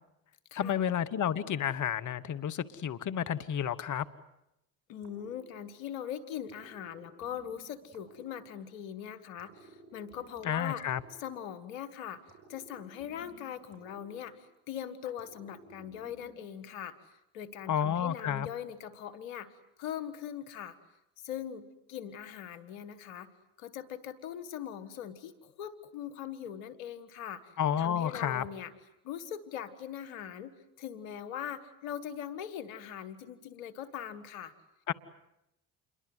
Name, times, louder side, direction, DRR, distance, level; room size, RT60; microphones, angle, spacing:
voice 1, 0.5-4.0 10.4-11.0 17.7-18.5 27.6-28.4 34.9-35.0, left 9 dB, 45° left, 14 dB, 1.2 m, -31 dB
voice 2, 4.9-10.8 11.2-12.2 12.5-17.0 17.3-20.8 21.2-21.6 21.9-23.3 23.6-27.5 27.8-28.7 29.0-30.5 30.8-34.5, left 9 dB, 90° left, 13 dB, 1.7 m, -41 dB
sound 1, 5.0-6.0 6.5-8.9 9.4-11.8 12.3-14.7 15.2-16.7, right 3 dB, 40° right, 5.9 m, -56 dB
28.0 x 22.5 x 7.9 m, 0.85 s
hypercardioid pair, 65°, 40 cm